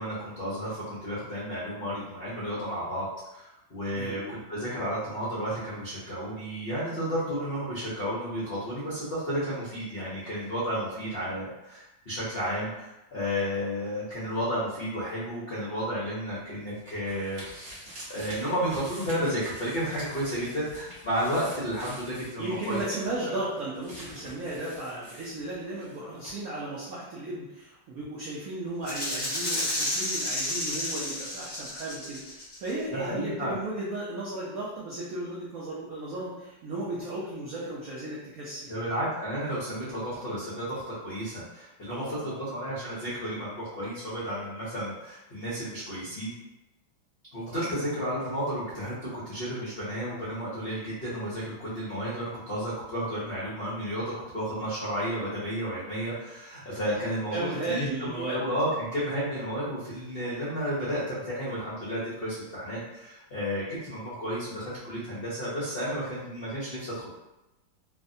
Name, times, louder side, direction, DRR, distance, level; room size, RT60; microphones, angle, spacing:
voice 1, 0.0-3.1 3.3-17.8 18.1-22.8 23.2-23.4 32.9-33.5 38.7-46.3 47.3-57.9 58.2-67.1, equal, 75° left, -9 dB, 0.5 m, -32 dB
voice 2, 4.0-4.3 22.4-38.9 41.9-42.4 47.5-47.7 57.3-58.5, right 2 dB, 85° right, -6 dB, 0.7 m, -35 dB
sound 1, 16.3-26.0 26.2-26.3, equal, 50° right, 0.6 m, -47 dB
Rattle (instrument), 28.8-32.7, left 1 dB, 10° left, 0.6 m, -31 dB
3.2 x 2.1 x 2.6 m, 0.96 s
omnidirectional pair, 2.2 m